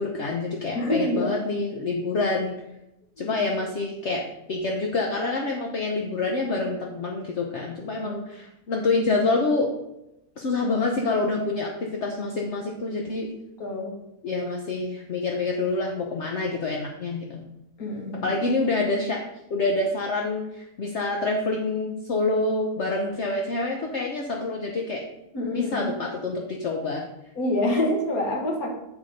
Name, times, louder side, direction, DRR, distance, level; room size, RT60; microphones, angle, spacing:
voice 1, 0.0-2.5 3.2-9.7 10.4-13.3 14.2-17.4 18.2-19.2 19.5-25.0 25.5-27.1, left 3 dB, 55° left, 1 dB, 1.0 m, -27 dB
voice 2, 0.8-1.4 3.2-3.4 8.0-8.2 13.6-14.0 17.8-18.3 25.3-25.9 27.4-28.7, left 1 dB, 75° left, 0 dB, 2.0 m, -26 dB
7.3 x 4.8 x 5.1 m, 0.88 s
omnidirectional pair, 1.6 m